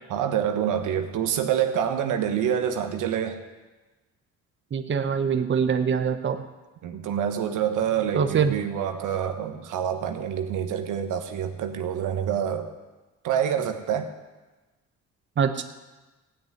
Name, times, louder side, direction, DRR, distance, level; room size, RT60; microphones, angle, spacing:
voice 1, 0.1-3.4 6.8-12.7 13.2-14.1, right 9 dB, 85° right, 6 dB, 1.3 m, -27 dB
voice 2, 4.7-6.4 8.1-8.5 15.4-15.6, right 6 dB, 40° right, 8 dB, 0.9 m, -23 dB
16.0 x 6.3 x 9.3 m, 1.2 s
cardioid pair, 90°, 30 cm